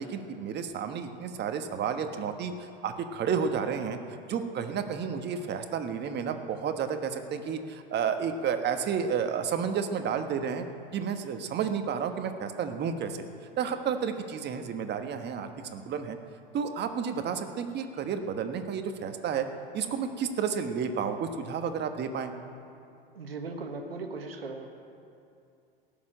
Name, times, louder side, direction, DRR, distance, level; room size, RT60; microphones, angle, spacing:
voice 1, 0.0-4.0 4.3-10.6 10.9-13.2 13.6-16.2 16.5-19.5 19.7-22.3, right 7 dB, 35° right, 7 dB, 1.4 m, -31 dB
voice 2, 23.1-24.7, right 3 dB, 90° right, 4 dB, 1.4 m, -38 dB
17.5 x 7.2 x 9.0 m, 2.6 s
hypercardioid pair, 85°, 29 cm